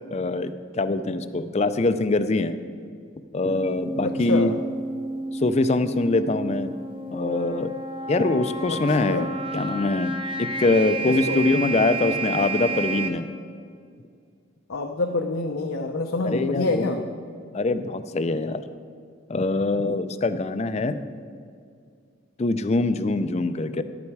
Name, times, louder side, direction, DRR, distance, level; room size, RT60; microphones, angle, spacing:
voice 1, 0.1-2.6 3.3-4.5 5.3-6.7 7.1-7.7 8.1-9.3 9.5-10.1 10.4-13.3 16.2-17.0 17.5-18.6 19.3-21.0 22.4-23.8, left 2 dB, 35° left, 11 dB, 0.4 m, -23 dB
sound 1, 3.4-13.1, right 3 dB, 25° right, 0.8 m, -31 dB
voice 2, 4.0-4.5 8.7-9.3 11.1-11.4 14.7-17.0, left 3 dB, 85° left, 3 dB, 0.6 m, -27 dB
11.5 x 8.5 x 4.7 m, 2.2 s
head